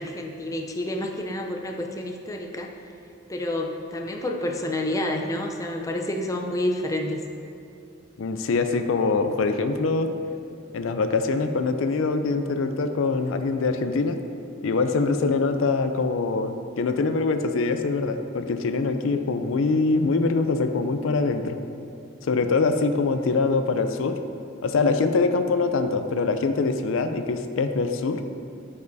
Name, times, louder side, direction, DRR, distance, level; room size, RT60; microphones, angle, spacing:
voice 1, 0.0-2.7 3.3-7.2, left 1 dB, 15° left, 2 dB, 0.5 m, -29 dB
voice 2, 8.2-10.1 10.7-14.2 14.6-21.6 22.2-24.2 24.6-28.2, left 4 dB, 75° left, 8 dB, 0.4 m, -24 dB
12.0 x 5.3 x 2.7 m, 2.6 s
head